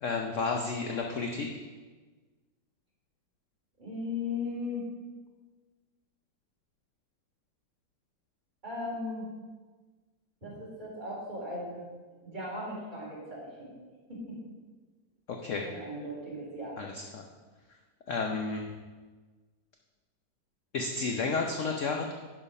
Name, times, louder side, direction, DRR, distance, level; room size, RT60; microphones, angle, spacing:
voice 1, 0.0-1.5 15.3-15.7 16.8-17.2 18.1-18.7 20.7-22.1, left 4 dB, 60° left, 2 dB, 0.8 m, -32 dB
voice 2, 3.8-4.8 8.6-9.3 10.4-11.8 12.2-13.7 14.1-14.4 15.5-16.8, left 2 dB, 20° right, -6 dB, 3.5 m, -37 dB
10.5 x 5.6 x 5.4 m, 1.4 s
omnidirectional pair, 2.1 m